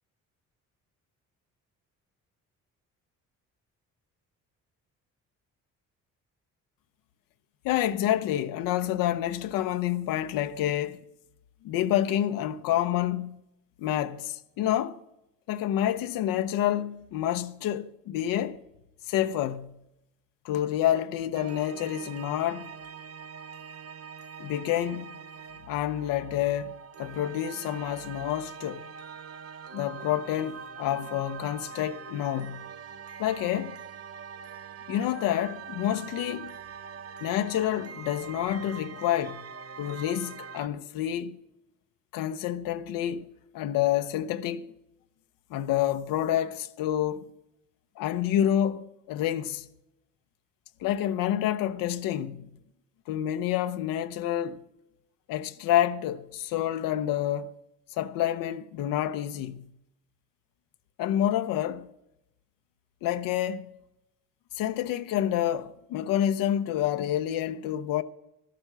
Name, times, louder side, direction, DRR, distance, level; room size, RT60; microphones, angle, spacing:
voice 1, 7.6-11.0 11.6-13.4 13.8-15.0 15.5-18.6 19.1-19.7 20.4-22.7 24.4-25.2 25.7-28.8 29.7-32.6 33.2-33.7 34.9-36.5 37.2-39.4 39.8-41.3 42.1-43.3 43.5-44.7 45.5-47.3 48.0-49.7 50.8-52.5 53.1-54.6 55.3-57.5 57.9-59.6 61.0-61.9 63.0-63.7 64.6-68.0, left 11 dB, 85° left, 0.7 m, -28 dB
sound 1, 21.3-40.7, right 6 dB, 45° right, 0.7 m, -43 dB
13.5 x 7.6 x 7.8 m
cardioid pair, 75°, 33 cm